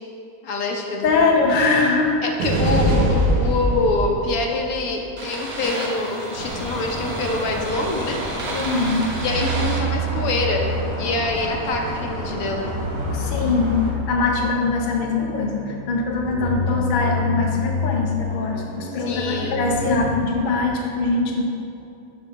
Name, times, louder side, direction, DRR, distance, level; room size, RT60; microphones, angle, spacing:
voice 1, 0.4-1.4 2.2-8.2 9.2-12.9 19.0-19.6, left 3 dB, 75° left, 1 dB, 1.1 m, -25 dB
voice 2, 1.0-2.1 8.5-9.1 13.1-13.8 14.1-21.4, left 3 dB, 60° left, 1 dB, 0.5 m, -22 dB
sound 1, 2.4-20.2, equal, 80° right, 1.3 m, -27 dB
sound 2, 6.3-13.9, equal, 30° right, 0.6 m, -32 dB
7.0 x 3.5 x 3.9 m, 2.6 s
omnidirectional pair, 1.5 m